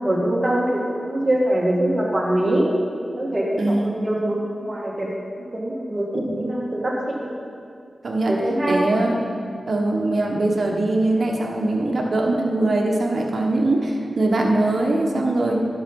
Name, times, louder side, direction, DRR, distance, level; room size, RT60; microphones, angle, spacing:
voice 1, 0.0-2.7 3.1-5.1 5.4-7.3 8.3-8.8, right 1 dB, 35° right, -2 dB, 1.8 m, -23 dB
voice 2, 3.6-3.9 6.3-6.6 8.0-8.3 8.7-9.2 9.7-15.6, right 2 dB, 60° right, 0 dB, 1.3 m, -21 dB
11.5 x 5.7 x 5.4 m, 2.3 s
cardioid pair, 50°, 0 cm